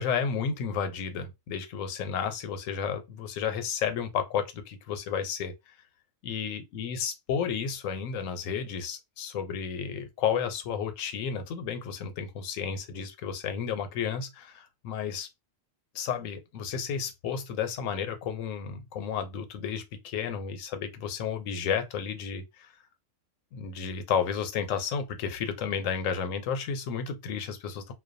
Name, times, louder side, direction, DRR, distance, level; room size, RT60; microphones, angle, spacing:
voice 1, 0.0-5.5 6.2-15.3 15.9-22.7 23.5-27.9, left 7 dB, 85° left, 1.0 m, -32 dB
2.2 x 2.2 x 2.5 m
omnidirectional pair, 1.3 m